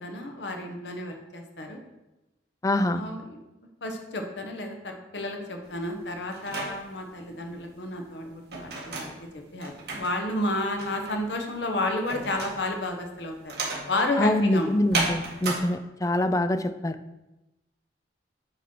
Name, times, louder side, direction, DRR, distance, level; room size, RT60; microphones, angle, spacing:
voice 1, 0.0-1.8 2.9-3.4 3.8-13.5 13.9-14.7, left 1 dB, 70° left, 3 dB, 1.2 m, -31 dB
voice 2, 2.6-3.0 14.2-17.0, left 1 dB, 20° left, 11 dB, 0.4 m, -25 dB
sound 1, 5.6-15.6, right 3 dB, 60° right, 1.9 m, -35 dB
9.1 x 4.4 x 4.6 m, 0.98 s
head